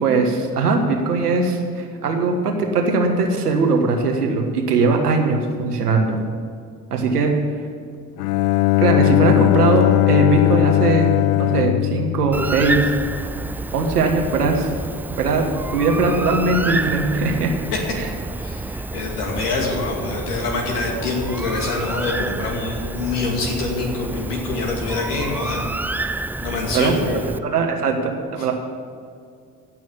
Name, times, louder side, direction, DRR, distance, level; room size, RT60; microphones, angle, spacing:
voice 1, 0.0-6.2 6.9-7.3 8.8-11.1 11.4-12.9 13.7-14.7 15.2-15.4 15.7-17.5 17.9-18.1 26.7-26.9 27.5-28.5, right 3 dB, 90° right, 3 dB, 1.5 m, -20 dB
Bowed string instrument, 8.2-13.0, left 18 dB, 60° left, 0.6 m, -18 dB
Bird, 12.3-27.4, right 2 dB, 5° right, 0.3 m, -29 dB
voice 2, 18.4-25.7 26.4-27.3 28.4-28.5, left 3 dB, 80° left, 0 dB, 2.5 m, -25 dB
16.0 x 6.2 x 8.5 m, 2.3 s
hypercardioid pair, 55°, 45 cm